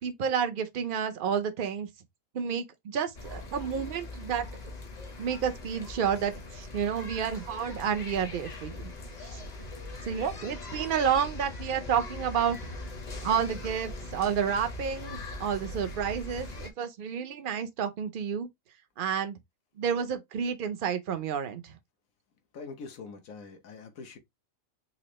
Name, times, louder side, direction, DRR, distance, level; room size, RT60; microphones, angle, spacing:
voice 1, 0.0-1.9 2.3-4.5 5.2-8.9 10.0-12.7 13.2-18.5 19.0-19.4 19.8-21.8, right 7 dB, 55° right, 0.6 m, -30 dB
sound 1, 3.1-16.7, left 2 dB, 35° left, 0.9 m, -41 dB
voice 2, 22.5-24.2, left 4 dB, 75° left, 1.3 m, -43 dB
4.1 x 2.5 x 3.0 m
omnidirectional pair, 1.4 m